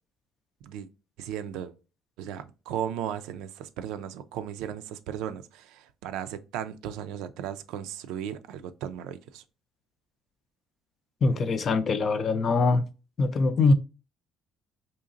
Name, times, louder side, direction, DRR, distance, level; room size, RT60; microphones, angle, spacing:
voice 1, 1.2-1.7 2.2-9.4 13.6-13.7, right 9 dB, 90° right, 0.4 m, -36 dB
voice 2, 11.2-12.9 13.2-13.7, left 3 dB, 45° left, 0.5 m, -23 dB
3.9 x 2.8 x 2.6 m
cardioid pair, 110°, 0 cm